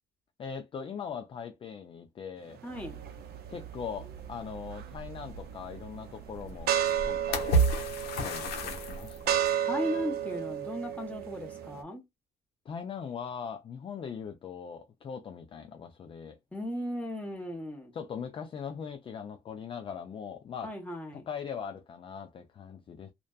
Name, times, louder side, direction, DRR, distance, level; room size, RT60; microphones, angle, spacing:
voice 1, 0.4-2.6 3.5-7.6 8.2-9.4 12.7-16.4 17.9-20.7 21.1-23.1, left 7 dB, 30° left, 0.4 m, -40 dB
sound 1, 2.5-11.8, right 10 dB, 70° right, 0.6 m, -34 dB
voice 2, 2.6-3.0 9.6-12.0 16.5-17.9 20.6-21.3, equal, 10° left, 1.1 m, -36 dB
sound 2, 2.8-9.5, right 2 dB, 70° left, 0.8 m, -33 dB
2.5 x 2.2 x 2.3 m
cardioid pair, 110°, 17 cm